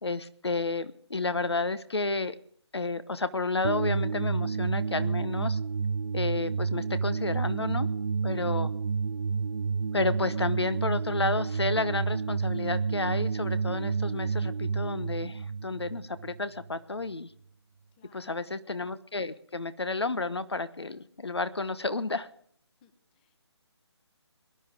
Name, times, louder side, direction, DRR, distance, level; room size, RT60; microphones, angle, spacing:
voice 1, 0.0-2.4 2.7-5.6 6.1-7.9 8.2-8.7 9.9-17.3 18.1-22.3, left 3 dB, 65° left, 14 dB, 1.2 m, -31 dB
sound 1, 3.6-16.8, right 5 dB, 50° right, 0.5 m, -30 dB
voice 2, 17.9-18.7 22.8-23.4, left 7 dB, 20° left, 11 dB, 1.1 m, -62 dB
23.5 x 11.0 x 3.6 m, 0.64 s
figure-of-eight pair, 150°, 14 cm